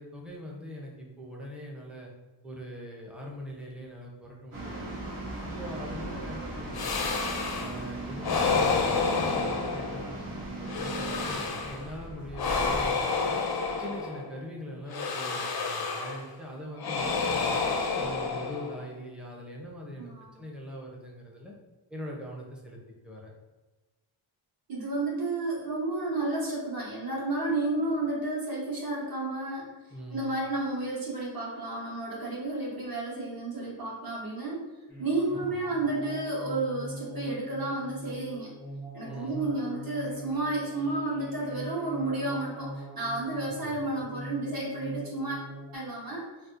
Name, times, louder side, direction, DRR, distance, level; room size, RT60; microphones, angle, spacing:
voice 1, 0.0-2.1 2.4-5.0 5.4-7.2 7.6-13.4 13.8-17.6 18.0-21.5 21.9-23.3 29.9-30.4 35.3-35.8 39.0-39.5 43.5-44.0, equal, ahead, -2 dB, 0.5 m, -42 dB
sound 1, 4.5-12.9, right 2 dB, 80° right, 1.4 m, -38 dB
sound 2, 6.7-7.8 8.2-10.2 10.6-11.9 12.3-14.3 14.9-16.3 16.8-18.9, left 4 dB, 50° left, 0.5 m, -29 dB
voice 2, 20.0-20.3 24.7-29.7 30.1-34.6 35.0-38.5 38.9-45.5 45.7-46.3, right 2 dB, 45° right, -4 dB, 1.1 m, -31 dB
sound 3, 34.9-45.8, right 1 dB, 20° right, 1.1 m, -42 dB
4.1 x 2.3 x 2.4 m, 1.2 s
wide cardioid pair, 120°, 50 cm